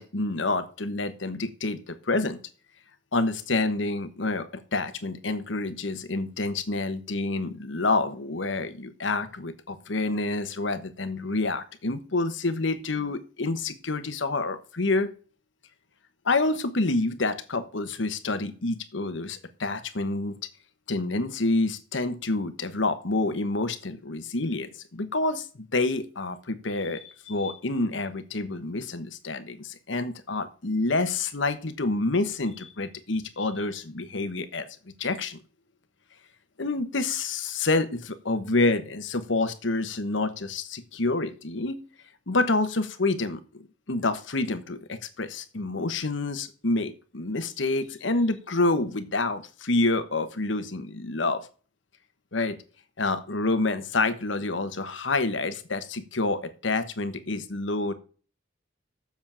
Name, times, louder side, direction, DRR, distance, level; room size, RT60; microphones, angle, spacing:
voice 1, 0.0-2.4 3.1-15.1 16.2-20.4 20.9-34.7 35.0-35.4 36.6-41.8 42.3-51.5 52.3-52.6 53.0-57.9, left 2 dB, 75° left, 10 dB, 1.2 m, -28 dB
7.3 x 7.1 x 7.4 m, 0.39 s
head